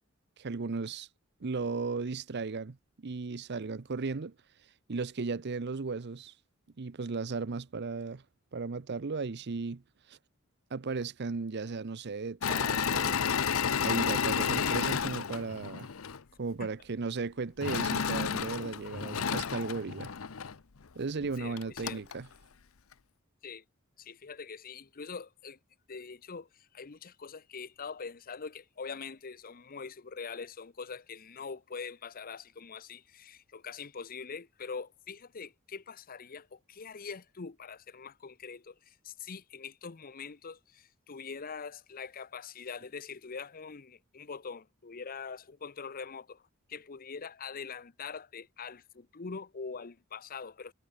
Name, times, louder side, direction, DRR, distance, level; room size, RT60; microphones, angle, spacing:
voice 1, 0.4-1.1 1.4-4.3 4.9-6.3 6.8-8.2 8.5-9.8 10.1-10.2 10.7-13.2 13.8-15.9 16.4-20.1 21.0-22.3, right 4 dB, 55° right, 0.7 m, -35 dB
Engine / Mechanisms, 12.4-16.2 17.6-20.5 21.2-21.3 21.6-22.1, left 6 dB, 85° left, 0.8 m, -31 dB
voice 2, 14.5-14.9 16.6-16.7 21.4-22.0 23.4-23.6 24.0-25.6 25.9-46.4 46.7-50.7, left 5 dB, 45° left, 0.8 m, -43 dB
head